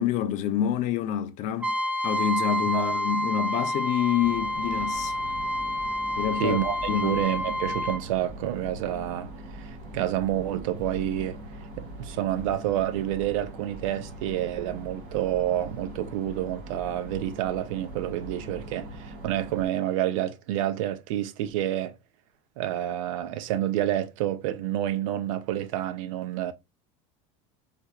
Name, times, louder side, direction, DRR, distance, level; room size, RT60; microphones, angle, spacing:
voice 1, 0.0-1.8 2.0-5.1 6.2-6.6 6.9-7.3, left 10 dB, 50° left, 0.5 m, -27 dB
Trumpet, 1.6-8.0, equal, 10° right, 0.4 m, -29 dB
sound 1, 4.2-19.7, right 1 dB, 50° right, 2.2 m, -41 dB
voice 2, 6.4-11.4 11.8-21.9 22.6-26.5, right 12 dB, 90° right, 0.6 m, -29 dB
4.2 x 2.5 x 2.3 m
supercardioid pair, 145°, 16 cm